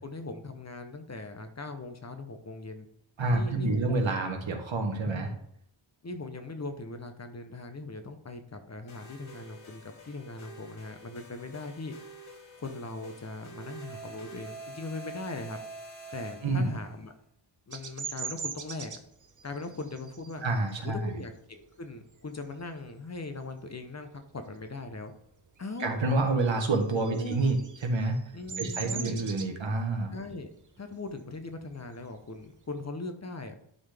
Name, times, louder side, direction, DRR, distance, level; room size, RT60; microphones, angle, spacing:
voice 1, 0.0-2.9 3.3-4.2 5.0-5.4 6.0-11.9 12.6-15.6 16.1-17.1 17.7-19.0 19.4-20.4 20.8-25.1 25.6-25.9 27.1-27.4 28.3-29.2 30.1-30.5 30.8-33.6, left 3 dB, 35° left, 7 dB, 0.7 m, -40 dB
voice 2, 3.2-5.3 16.4-16.7 20.4-21.1 25.8-27.6 27.8-28.2 28.6-30.1, right 2 dB, 70° right, 4 dB, 1.3 m, -28 dB
sound 1, 8.9-17.0, right 2 dB, 75° left, 1.5 m, -47 dB
Bird vocalization bird call bird song, 17.7-22.9 23.3-23.7 24.0-25.2 25.5-32.8, right 6 dB, 40° right, 0.7 m, -42 dB
11.0 x 3.9 x 3.4 m, 0.69 s
wide cardioid pair, 125°, 48 cm